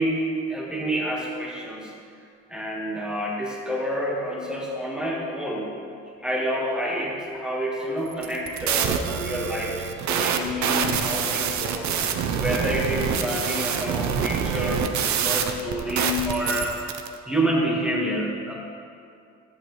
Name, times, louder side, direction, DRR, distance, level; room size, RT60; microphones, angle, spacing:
voice 1, 0.0-1.9 2.5-5.7 6.2-11.9 12.4-16.7 17.3-18.5, equal, 5° right, -5 dB, 1.6 m, -28 dB
sound 1, 8.1-17.1, right 7 dB, 70° right, 0.8 m, -26 dB
11.5 x 9.3 x 3.2 m, 2.4 s
cardioid pair, 90°, 30 cm